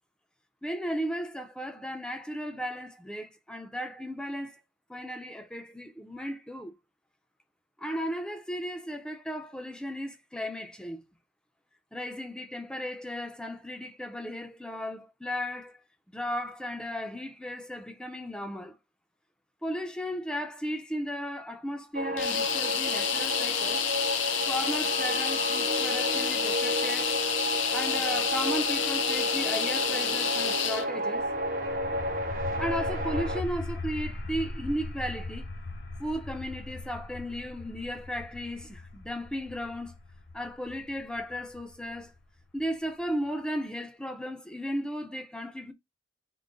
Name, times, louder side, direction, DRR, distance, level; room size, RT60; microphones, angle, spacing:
voice 1, 0.6-4.6 4.9-6.7 7.8-11.0 11.9-15.8 16.1-18.7 19.6-23.8 24.5-27.2 27.7-31.3 32.6-35.5 36.0-39.9 40.3-42.1 42.5-45.7, equal, 5° left, 0.5 m, -35 dB
sound 1, 21.9-33.4, right 1 dB, 50° right, 0.7 m, -32 dB
sound 2, 22.2-30.9, left 9 dB, 90° left, 0.5 m, -29 dB
sound 3, 31.1-42.6, left 2 dB, 60° left, 0.8 m, -39 dB
3.7 x 2.1 x 3.7 m
head